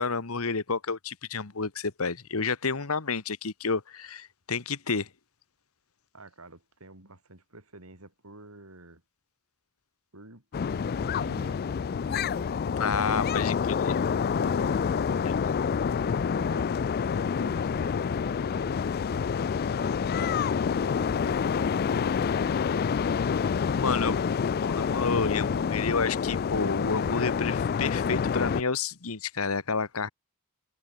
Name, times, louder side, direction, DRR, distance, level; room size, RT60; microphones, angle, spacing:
voice 1, 0.0-5.1 12.8-14.0 23.8-24.2 24.6-30.1, left 4 dB, 70° left, 1.4 m, -30 dB
voice 2, 6.1-9.0 10.1-13.5 14.3-15.3 16.3-18.9 19.7-22.9, right 2 dB, 75° right, 5.5 m, -50 dB
sound 1, 10.5-28.6, left 6 dB, 45° left, 0.3 m, -27 dB
head